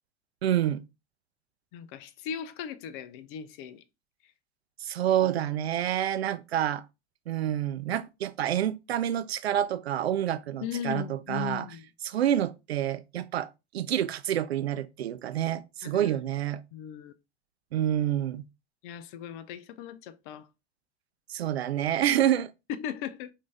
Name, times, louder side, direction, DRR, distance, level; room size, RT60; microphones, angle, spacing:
voice 1, 0.4-0.8 4.8-6.8 7.3-11.7 12.0-13.5 13.7-16.6 17.7-18.4 21.3-22.5, right 11 dB, 80° right, 0.5 m, -28 dB
voice 2, 1.7-3.8 10.6-11.9 15.8-16.2 16.7-17.1 18.8-20.5 22.7-23.3, left 9 dB, 50° left, 0.6 m, -38 dB
5.1 x 2.7 x 3.3 m
figure-of-eight pair, 85°, 31 cm